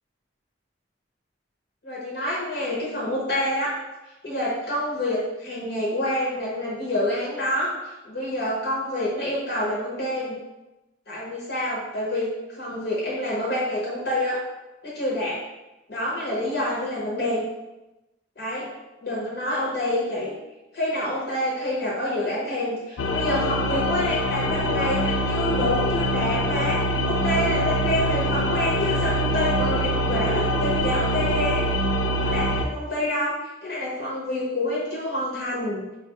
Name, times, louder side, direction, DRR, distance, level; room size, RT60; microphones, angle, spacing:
voice 1, 1.8-3.7 4.2-10.4 11.1-14.4 14.8-15.4 15.9-17.4 18.4-18.7 19.0-20.4 20.7-31.7 32.2-35.8, left 1 dB, 50° left, -6 dB, 0.9 m, -27 dB
sound 1, 23.0-32.7, equal, 75° left, 0.4 m, -24 dB
4.8 x 2.3 x 2.9 m, 1.0 s
head